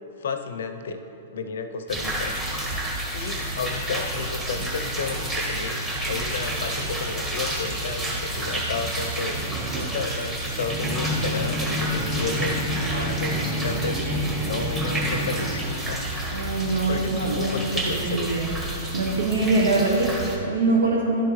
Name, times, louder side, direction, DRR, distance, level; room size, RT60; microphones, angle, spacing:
voice 1, 0.2-1.0 1.3-2.8 3.1-9.4 9.7-12.6 12.9-14.0 14.4-16.0 16.9-18.3, left 5 dB, 75° left, 7 dB, 0.6 m, -32 dB
sound 1, 1.9-20.4, right 1 dB, 15° right, 1.4 m, -28 dB
voice 2, 16.3-17.5 17.9-18.5 18.9-21.2, right 3 dB, 85° right, -2 dB, 1.0 m, -23 dB
11.0 x 4.6 x 3.1 m, 2.9 s
hypercardioid pair, 125°, 0 cm